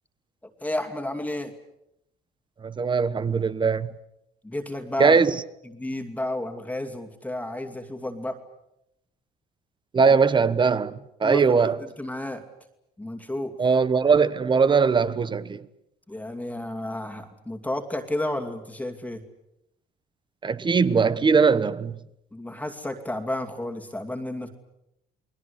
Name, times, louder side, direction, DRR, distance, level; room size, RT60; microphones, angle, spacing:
voice 1, 0.6-1.5 4.4-5.2 5.6-8.4 11.2-11.4 12.0-12.4 13.0-13.6 16.1-19.2 22.3-24.5, left 1 dB, 10° left, 2.5 m, -31 dB
voice 2, 2.6-3.9 5.0-5.4 9.9-11.8 13.6-15.6 20.4-22.0, right 5 dB, 30° right, 1.2 m, -20 dB
29.5 x 20.5 x 8.3 m
cardioid pair, 110°, 17 cm